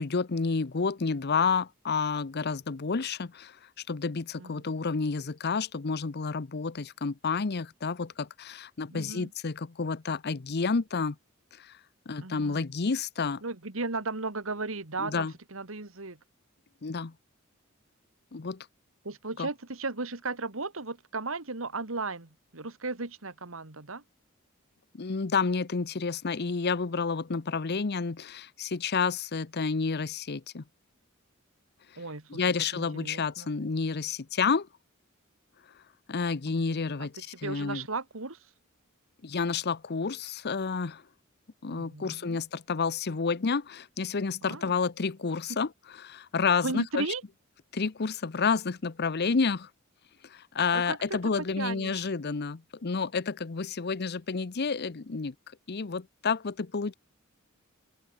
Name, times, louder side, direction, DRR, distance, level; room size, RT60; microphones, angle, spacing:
voice 1, 0.0-3.6 3.9-11.2 11.5-11.8 12.1-13.4 15.0-15.3 16.8-17.1 18.3-18.7 19.4-19.5 24.9-30.6 32.3-34.7 36.1-37.1 37.4-37.9 39.2-41.0 41.6-45.7 46.0-47.1 47.7-49.7 50.2-55.3 55.7-56.9, left 5 dB, 50° left, 0.7 m, -30 dB
voice 2, 8.9-9.3 12.2-12.6 13.4-16.2 19.0-24.0 32.0-32.5 32.7-33.5 36.5-37.1 37.4-38.4 41.7-42.4 44.4-44.8 46.6-47.2 50.7-51.2 51.6-52.1, right 3 dB, 75° right, 2.1 m, -36 dB
open air
head